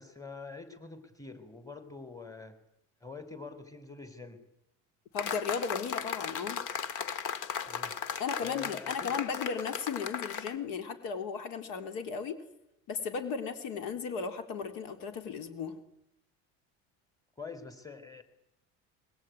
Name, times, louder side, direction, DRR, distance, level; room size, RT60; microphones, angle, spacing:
voice 1, 0.0-2.6 3.0-4.5 7.7-8.0 8.4-9.2 17.4-18.2, left 4 dB, 10° left, 10 dB, 3.7 m, -45 dB
voice 2, 5.1-6.6 8.2-12.4 12.9-15.8, left 6 dB, 80° left, 8 dB, 3.6 m, -35 dB
sound 1, 5.2-10.6, left 7 dB, 65° left, 2.1 m, -36 dB
22.0 x 21.5 x 9.3 m, 0.82 s
cardioid pair, 115°, 33 cm